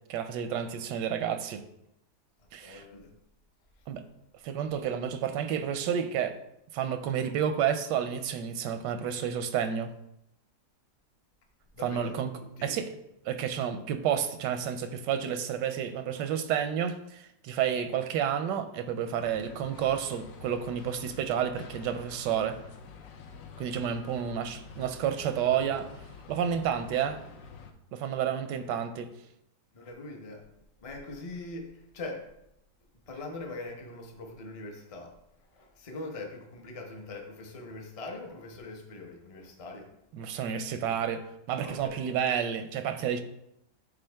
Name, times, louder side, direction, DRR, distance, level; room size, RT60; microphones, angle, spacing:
voice 1, 0.1-1.6 2.5-2.8 3.9-4.0 4.4-6.4 6.7-9.9 11.8-12.3 12.6-12.9 13.3-22.6 23.6-25.9 26.3-27.3 27.9-29.1 40.1-43.2, right 8 dB, 85° right, 1.2 m, -30 dB
voice 2, 2.6-3.1 11.7-12.8 28.6-28.8 29.7-30.5 30.8-32.3 33.1-35.2 35.5-39.9 41.6-42.0, left 2 dB, 30° left, 0.6 m, -42 dB
sound 1, 19.2-27.7, left 5 dB, 65° left, 0.9 m, -48 dB
8.3 x 3.9 x 3.4 m
omnidirectional pair, 1.8 m